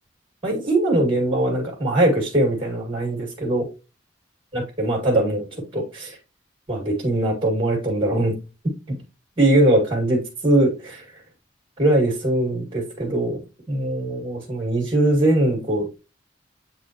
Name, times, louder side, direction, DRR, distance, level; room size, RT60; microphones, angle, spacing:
voice 1, 0.4-3.7 4.5-6.2 6.7-8.3 8.9-9.0 9.4-11.1 11.8-13.4 13.7-15.9, right 1 dB, 25° right, -1 dB, 2.0 m, -21 dB
7.8 x 4.1 x 2.9 m, 0.29 s
head